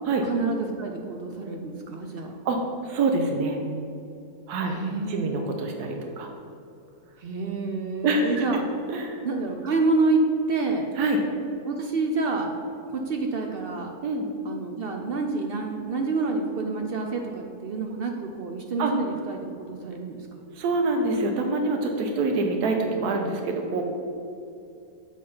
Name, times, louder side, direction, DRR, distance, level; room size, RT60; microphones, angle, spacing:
voice 1, 0.2-2.3 4.7-5.4 7.2-8.6 9.2-10.9 11.6-12.6 12.9-13.9 14.4-20.5, right 3 dB, 65° right, 3 dB, 0.5 m, -28 dB
voice 2, 2.8-3.6 4.5-4.8 5.1-6.3 8.0-8.6 8.9-9.2 11.0-11.2 14.0-14.3 18.8-18.9 20.5-23.9, right 3 dB, 85° right, 3 dB, 1.2 m, -25 dB
7.5 x 4.0 x 5.4 m, 2.7 s
omnidirectional pair, 1.6 m